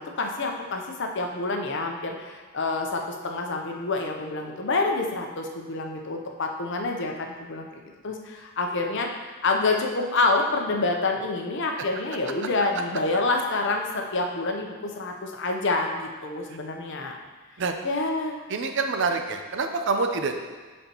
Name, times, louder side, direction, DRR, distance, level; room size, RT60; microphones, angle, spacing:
voice 1, 0.0-7.7 8.0-17.2 17.8-18.4, left 3 dB, 55° left, 2 dB, 0.7 m, -27 dB
voice 2, 18.5-20.4, right 4 dB, 55° right, 5 dB, 0.6 m, -26 dB
10.5 x 4.3 x 3.0 m, 1.4 s
head